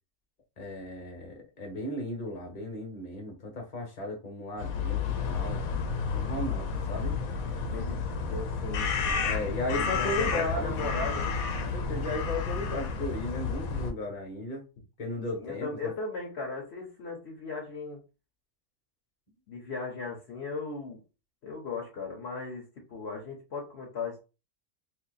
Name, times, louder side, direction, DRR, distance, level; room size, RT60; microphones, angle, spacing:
voice 1, 0.6-5.0 5.3-5.6 6.1-7.2 9.2-10.7 11.7-14.6 15.0-15.9, left 1 dB, 30° left, 1.0 m, -35 dB
sound 1, 4.6-13.9, left 5 dB, 85° left, 1.1 m, -31 dB
voice 2, 7.6-11.4 15.3-18.0 19.5-21.0 21.4-24.2, left 4 dB, 55° left, 1.0 m, -37 dB
2.7 x 2.7 x 4.0 m
omnidirectional pair, 1.5 m